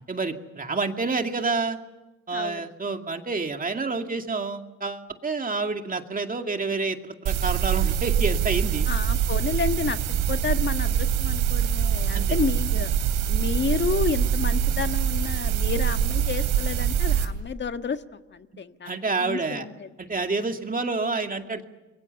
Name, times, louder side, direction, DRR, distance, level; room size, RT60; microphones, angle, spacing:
voice 1, 0.1-1.8 2.3-8.9 12.1-12.4 18.8-19.7 20.0-21.6, right 3 dB, 30° right, 5 dB, 2.3 m, -28 dB
voice 2, 2.3-2.7 8.9-10.0 10.3-12.9 13.3-19.9, left 5 dB, 35° left, 8 dB, 1.6 m, -30 dB
sound 1, 7.3-17.3, right 9 dB, 85° right, 3.0 m, -24 dB
28.5 x 22.5 x 7.0 m, 1.1 s
cardioid pair, 90°, 30 cm